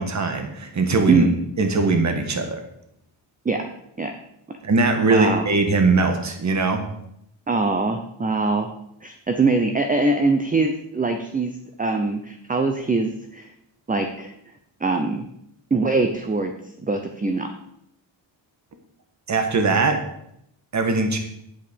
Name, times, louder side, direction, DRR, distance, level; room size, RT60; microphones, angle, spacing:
voice 1, 0.0-1.2 1.6-2.6 4.6-6.8 19.3-20.0 20.7-21.2, right 3 dB, 35° right, 6 dB, 1.4 m, -20 dB
voice 2, 1.1-1.4 3.4-3.6 4.0-4.1 5.1-5.4 7.5-8.7 9.0-13.5 13.9-14.3 14.8-15.2 15.7-16.5 16.8-17.5, right 3 dB, 20° right, 6 dB, 0.6 m, -22 dB
9.0 x 8.6 x 5.2 m, 0.75 s
wide cardioid pair, 155°, 47 cm